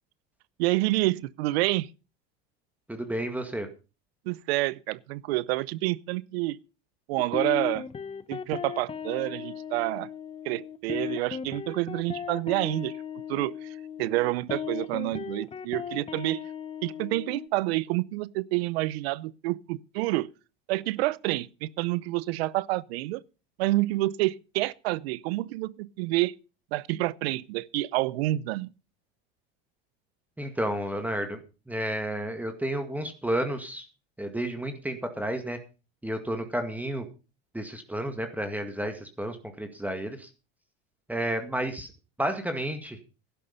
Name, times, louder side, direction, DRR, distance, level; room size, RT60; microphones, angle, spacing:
voice 1, 0.6-1.9 4.3-6.6 7.1-7.9 8.3-10.1 10.4-13.0 13.3-16.4 16.8-20.3 20.7-23.2 23.6-26.4 26.7-28.7, right 19 dB, 75° right, 0.8 m, -28 dB
voice 2, 2.9-3.7 30.4-31.4 31.7-33.9 34.2-35.6 36.0-37.1 37.5-40.3 41.1-41.9 42.2-43.0, right 1 dB, 5° right, 2.0 m, -31 dB
sound 1, 7.2-17.5, left 7 dB, 20° left, 0.8 m, -37 dB
11.5 x 11.5 x 5.2 m
supercardioid pair, 110°, 31 cm